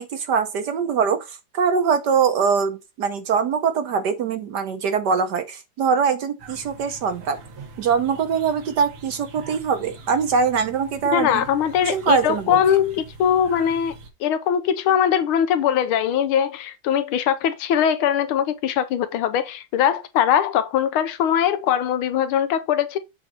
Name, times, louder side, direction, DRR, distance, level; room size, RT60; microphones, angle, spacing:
voice 1, 0.0-7.4 7.8-11.4 11.8-12.6, right 6 dB, 60° right, 1.2 m, -22 dB
sound 1, 6.4-14.1, right 3 dB, 85° right, 2.4 m, -43 dB
voice 2, 11.1-13.9 14.2-23.0, left 9 dB, 80° left, 1.6 m, -21 dB
7.9 x 4.0 x 4.4 m
omnidirectional pair, 2.3 m